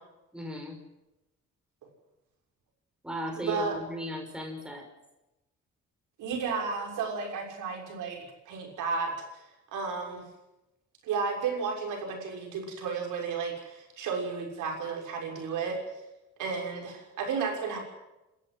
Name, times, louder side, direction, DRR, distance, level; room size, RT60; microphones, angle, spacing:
voice 1, 0.3-0.8 3.0-4.9, right 1 dB, 5° right, 2 dB, 5.9 m, -36 dB
voice 2, 3.4-3.8 6.2-8.2 8.4-9.4 9.7-10.3 11.0-15.8 16.4-17.8, right 5 dB, 85° right, 1 dB, 6.5 m, -33 dB
28.5 x 14.0 x 8.0 m, 0.97 s
cardioid pair, 90°, 30 cm